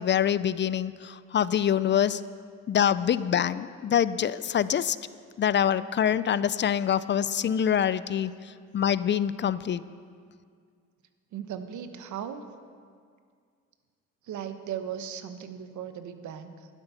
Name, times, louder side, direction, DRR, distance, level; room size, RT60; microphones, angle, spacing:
voice 1, 0.0-2.2 2.7-5.0 5.4-9.8, left 9 dB, 40° left, 16 dB, 0.4 m, -25 dB
voice 2, 11.3-12.4 14.2-16.7, right 9 dB, 75° right, 9 dB, 1.0 m, -37 dB
12.0 x 11.5 x 5.6 m, 2.1 s
cardioid pair, 90°, 30 cm